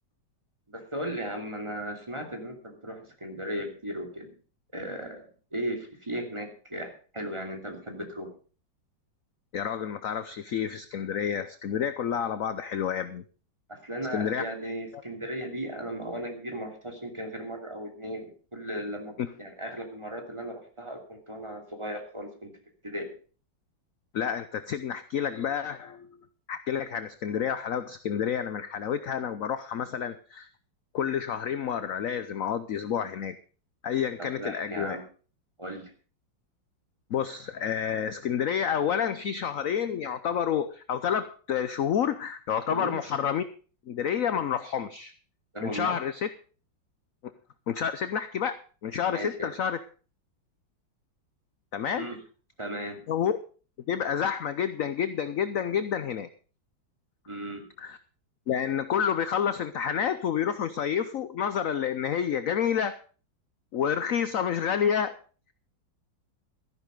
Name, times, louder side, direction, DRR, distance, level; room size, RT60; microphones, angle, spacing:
voice 1, 0.7-4.3 4.7-5.2 5.5-8.3 13.7-22.5 22.8-23.1 34.2-35.0 35.6-35.9 42.7-42.9 45.5-46.0 49.1-49.5 51.9-52.2 52.6-53.0 57.3-57.6, equal, 15° right, 3 dB, 2.8 m, -36 dB
voice 2, 9.5-13.2 14.1-14.4 19.2-19.3 24.1-26.1 26.5-30.5 30.9-33.4 33.8-35.0 37.1-43.4 43.9-45.1 45.6-46.3 47.7-49.8 51.7-52.1 53.1-53.4 53.9-56.3 57.8-58.0 58.5-63.0 63.7-65.1, left 8 dB, 60° left, 12 dB, 1.0 m, -29 dB
14.0 x 11.0 x 5.3 m, 0.39 s
omnidirectional pair, 2.0 m